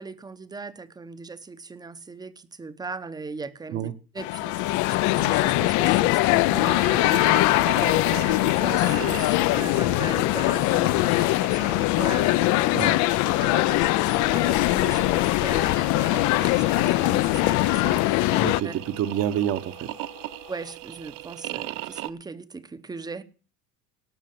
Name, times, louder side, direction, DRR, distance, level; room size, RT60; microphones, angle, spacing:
voice 1, 0.0-12.9 13.3-18.8 20.5-23.2, right 4 dB, 10° right, 0.8 m, -38 dB
sound 1, 4.2-18.6, left 19 dB, 60° left, 0.6 m, -22 dB
sound 2, 6.5-20.7, left 14 dB, 85° left, 3.3 m, -50 dB
booting ibook, 6.5-22.1, right 19 dB, 75° right, 0.9 m, -39 dB
voice 2, 18.4-19.9, right 10 dB, 45° right, 1.1 m, -28 dB
18.0 x 6.7 x 7.6 m
cardioid pair, 155°, 34 cm